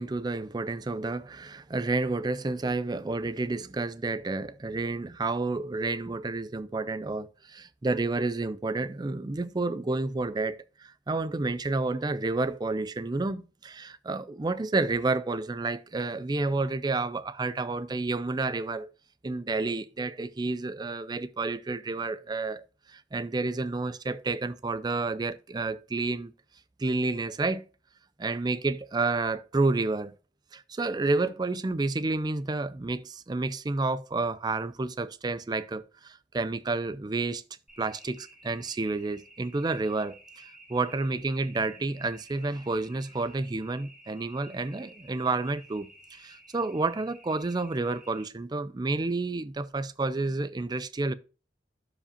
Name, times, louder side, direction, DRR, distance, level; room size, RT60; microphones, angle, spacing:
voice 1, 0.0-18.9 19.2-26.3 26.8-27.6 28.2-30.1 30.5-37.4 37.8-51.1, right 3 dB, 20° right, 0.4 m, -30 dB
sound 1, 37.7-48.3, right 1 dB, 5° right, 2.2 m, -53 dB
12.0 x 5.0 x 2.8 m
head